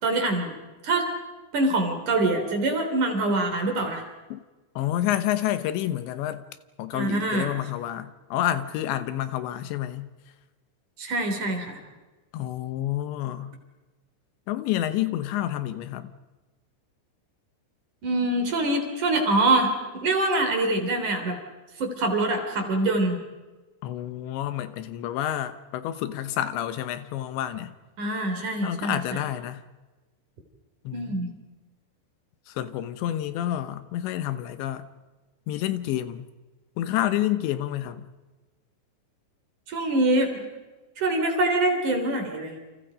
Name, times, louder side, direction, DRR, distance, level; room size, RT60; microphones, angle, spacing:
voice 1, 0.0-0.6 0.8-1.1 1.5-4.0 6.9-7.6 11.0-11.8 18.0-21.4 21.8-23.2 28.0-29.2 30.9-31.3 39.7-40.4 41.0-42.5, right 2 dB, 45° right, 4.5 m, -24 dB
voice 2, 4.8-6.4 6.8-10.1 12.3-13.5 14.5-16.1 23.8-27.7 28.6-29.6 30.8-31.2 32.5-34.9 35.5-36.2 36.8-38.1, left 12 dB, 80° left, 3.2 m, -29 dB
29.5 x 28.0 x 5.1 m
omnidirectional pair, 5.2 m